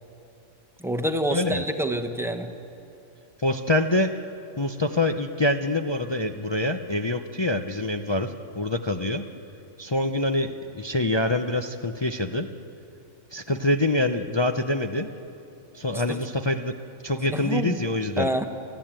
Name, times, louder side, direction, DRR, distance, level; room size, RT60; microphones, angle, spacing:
voice 1, 0.8-2.5 15.9-16.2 17.3-17.8 18.2-18.4, right 1 dB, ahead, 6 dB, 1.0 m, -27 dB
voice 2, 1.3-1.6 3.4-4.1 4.6-9.2 9.8-12.5 13.3-15.1 15.7-16.7 17.0-18.3, left 1 dB, 35° left, 6 dB, 0.4 m, -25 dB
28.0 x 12.5 x 8.9 m, 2.8 s
omnidirectional pair, 1.4 m